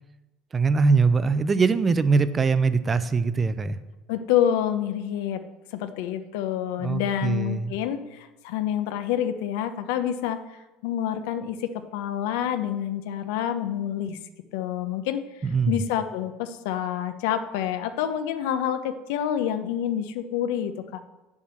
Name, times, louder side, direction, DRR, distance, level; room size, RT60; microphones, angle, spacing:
voice 1, 0.5-3.8 6.8-7.7 15.4-15.8, right 4 dB, 20° right, 13 dB, 0.5 m, -22 dB
voice 2, 4.1-5.4 5.7-10.4 10.8-14.2 14.5-15.2 15.7-21.0, left 10 dB, 85° left, 9 dB, 0.8 m, -27 dB
7.7 x 7.3 x 7.6 m, 1.1 s
cardioid pair, 145°, 0 cm